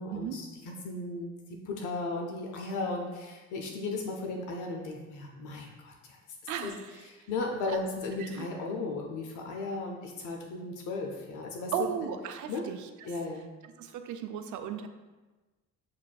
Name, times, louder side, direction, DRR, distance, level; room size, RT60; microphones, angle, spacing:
voice 1, 0.0-1.3 1.7-6.2 6.6-6.7 7.0-11.7 12.5-12.6 13.0-13.5, left 3 dB, 80° left, 1 dB, 0.6 m, -36 dB
voice 2, 6.5-7.0 7.7-7.8 8.2-8.5 11.7-12.8 13.8-14.9, right 9 dB, 75° right, 8 dB, 0.4 m, -35 dB
7.3 x 2.5 x 2.3 m, 1.2 s
cardioid pair, 90°, 30 cm